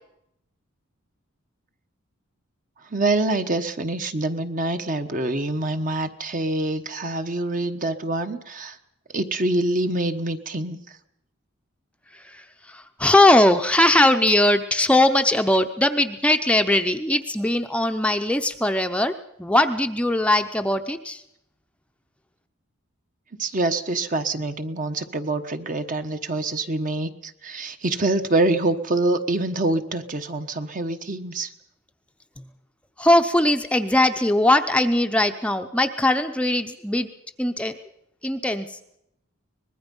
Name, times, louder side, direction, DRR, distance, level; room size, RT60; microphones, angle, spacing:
voice 1, 2.9-8.8 9.1-10.8 23.4-31.5, right 2 dB, 40° right, 7 dB, 1.2 m, -25 dB
voice 2, 12.1-19.1 19.4-21.2 33.0-37.1 37.4-37.8 38.2-38.8, left 1 dB, 5° left, 6 dB, 0.7 m, -20 dB
24.0 x 20.5 x 5.4 m, 0.78 s
head